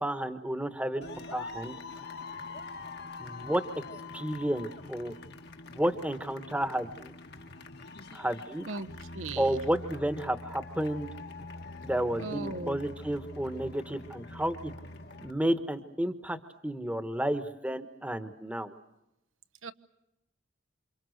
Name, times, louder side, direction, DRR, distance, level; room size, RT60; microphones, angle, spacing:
voice 1, 0.0-1.0 1.3-1.7 3.2-3.6 4.1-5.1 5.7-7.1 8.1-8.7 9.4-11.1 11.8-14.7 15.2-16.4 16.6-18.7, right 1 dB, 5° right, 9 dB, 1.2 m, -31 dB
sound 1, 1.0-15.3, left 3 dB, 55° left, 1.5 m, -44 dB
voice 2, 9.1-9.6 12.2-12.8 19.6-19.7, right 3 dB, 80° right, 9 dB, 1.2 m, -37 dB
28.5 x 26.5 x 6.6 m, 0.90 s
head